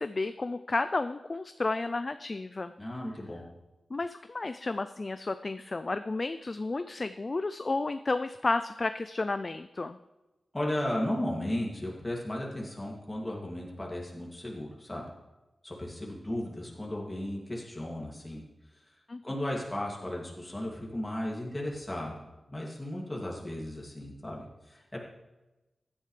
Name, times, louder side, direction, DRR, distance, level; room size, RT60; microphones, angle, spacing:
voice 1, 0.0-2.7 3.9-10.0 19.1-19.2, left 3 dB, 40° left, 11 dB, 0.4 m, -32 dB
voice 2, 2.8-3.4 10.5-15.1 15.6-18.4 19.2-25.0, left 1 dB, 15° left, -3 dB, 2.5 m, -35 dB
16.0 x 10.0 x 3.3 m, 1.1 s
wide cardioid pair, 90°, 0 cm